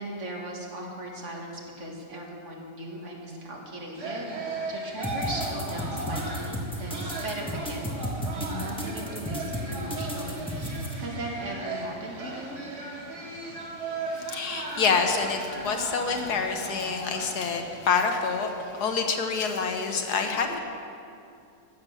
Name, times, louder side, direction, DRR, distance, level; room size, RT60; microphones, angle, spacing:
voice 1, 0.0-4.4 4.7-12.6, right 1 dB, 50° right, -1 dB, 2.0 m, -38 dB
sound 1, 3.9-17.8, right 2 dB, 75° right, 2.5 m, -37 dB
sound 2, 5.0-10.9, equal, 5° left, 1.2 m, -33 dB
voice 2, 14.2-20.6, left 5 dB, 80° left, 4 dB, 1.7 m, -27 dB
15.0 x 7.9 x 6.4 m, 2.5 s
omnidirectional pair, 1.7 m